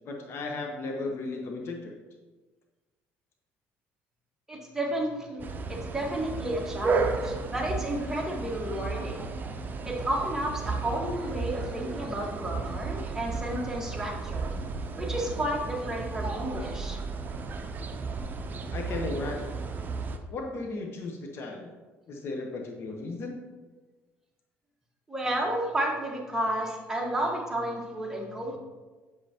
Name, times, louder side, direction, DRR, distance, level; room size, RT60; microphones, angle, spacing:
voice 1, 0.0-2.0 18.7-19.6 20.3-21.7 22.1-23.4, left 3 dB, 50° left, 2 dB, 1.0 m, -35 dB
voice 2, 4.5-5.4 5.7-9.2 9.8-14.5 15.0-17.0 25.1-28.6, right 1 dB, 10° right, -2 dB, 1.5 m, -32 dB
sound 1, 5.4-20.2, right 4 dB, 35° right, 0.6 m, -33 dB
7.9 x 5.3 x 2.9 m, 1.3 s
cardioid pair, 95°, 5 cm